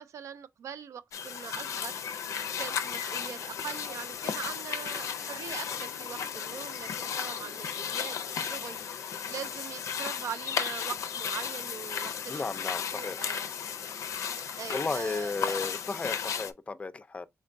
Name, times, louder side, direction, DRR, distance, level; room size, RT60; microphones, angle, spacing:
voice 1, 0.0-2.0 2.6-12.5 12.9-13.5 14.6-15.6, right 8 dB, 85° right, 0.3 m, -42 dB
sound 1, 1.1-16.5, left 7 dB, 85° left, 0.4 m, -35 dB
voice 2, 12.3-13.2 14.7-17.3, left 3 dB, 25° left, 0.4 m, -34 dB
4.3 x 3.7 x 2.5 m
wide cardioid pair, 125°, 5 cm